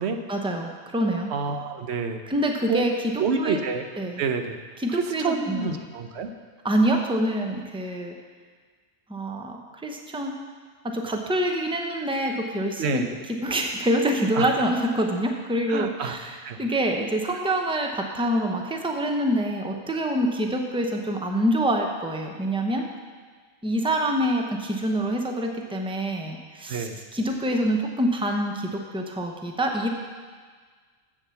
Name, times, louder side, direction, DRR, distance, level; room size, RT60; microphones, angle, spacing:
voice 1, 0.3-1.3 2.3-2.9 3.4-3.6 4.0-4.2 4.8-5.8 6.6-8.1 9.1-9.6 9.8-10.4 10.8-13.0 13.3-22.8 23.6-29.9, right 1 dB, 5° right, 2 dB, 0.7 m, -26 dB
voice 2, 1.3-2.2 2.7-2.9 3.2-3.9 4.2-4.6 4.9-6.3 12.8-13.1 14.3-14.5 15.7-16.6 26.7-27.0, right 5 dB, 85° right, 6 dB, 1.0 m, -28 dB
7.6 x 7.4 x 6.9 m, 1.5 s
omnidirectional pair, 1.1 m